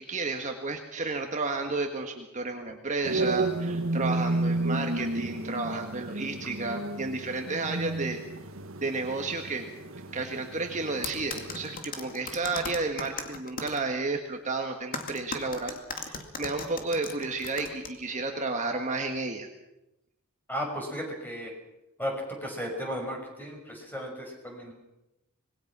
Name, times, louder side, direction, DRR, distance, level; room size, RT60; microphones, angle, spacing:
voice 1, 0.0-8.2 8.8-9.7 10.1-19.5, right 3 dB, 35° right, 3 dB, 1.6 m, -32 dB
sound 1, 3.0-11.8, right 2 dB, 60° right, 1.6 m, -32 dB
sound 2, 11.0-13.8 14.9-17.9, left 4 dB, 40° left, 2.4 m, -37 dB
voice 2, 20.5-21.5 22.0-22.1 22.4-24.7, equal, 10° left, 1 dB, 5.8 m, -35 dB
25.5 x 21.0 x 6.1 m, 0.91 s
head